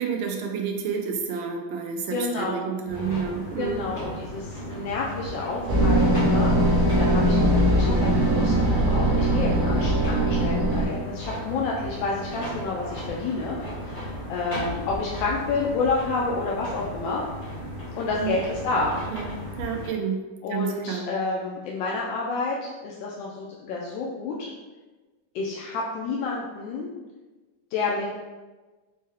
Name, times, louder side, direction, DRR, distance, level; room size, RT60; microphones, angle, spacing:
voice 1, 0.0-3.8 18.1-18.3 19.1-19.3 19.6-20.2 20.5-21.1, right 6 dB, 75° right, 3 dB, 1.3 m, -29 dB
voice 2, 2.1-2.6 3.6-13.6 13.8-17.3 17.9-19.0 20.4-24.5 25.3-26.9 27.7-28.1, left 3 dB, 75° left, -4 dB, 1.1 m, -29 dB
sound 1, 2.9-19.9, equal, 35° left, 0.8 m, -36 dB
sound 2, 5.7-10.9, right 1 dB, 60° right, 1.2 m, -21 dB
5.3 x 2.2 x 3.5 m, 1.2 s
omnidirectional pair, 2.3 m